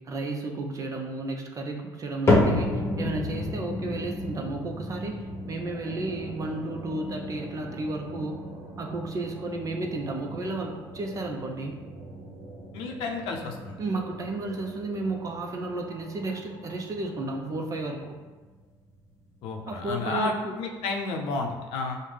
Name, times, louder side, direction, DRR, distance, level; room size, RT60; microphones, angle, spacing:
voice 1, 0.1-8.4 8.8-11.8 13.8-18.2 19.7-20.6, right 2 dB, 40° right, 2 dB, 0.5 m, -33 dB
sound 1, 2.3-18.6 18.9-19.4 20.0-20.1 20.9-21.0, left 2 dB, 30° left, 0.9 m, -32 dB
sound 2, 5.2-18.3, right 2 dB, 65° right, 0.8 m, -45 dB
voice 2, 12.7-13.8 19.4-22.0, left 3 dB, 80° left, 2 dB, 0.6 m, -31 dB
5.2 x 2.1 x 3.3 m, 1.3 s
supercardioid pair, 90°, 9 cm